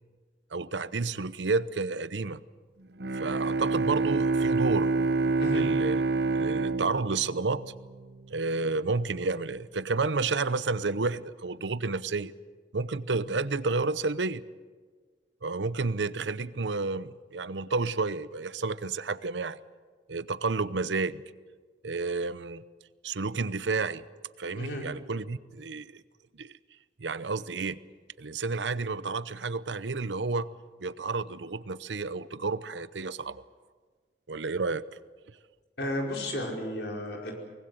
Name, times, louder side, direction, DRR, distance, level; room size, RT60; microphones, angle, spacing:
voice 1, 0.5-2.4 3.1-4.9 5.5-6.0 6.3-7.6 8.3-12.3 12.7-14.4 15.4-19.6 20.1-21.2 21.8-22.6 23.0-24.0 24.4-26.0 26.4-26.5 27.0-27.8 28.2-30.5 30.8-33.4 34.3-34.8, right 3 dB, 90° right, 16 dB, 0.8 m, -30 dB
Bowed string instrument, 3.0-8.2, right 3 dB, 65° right, 0.9 m, -27 dB
voice 2, 24.5-24.8 35.8-37.3, left 1 dB, 70° left, 1 dB, 5.2 m, -33 dB
24.0 x 20.0 x 7.9 m, 1.5 s
head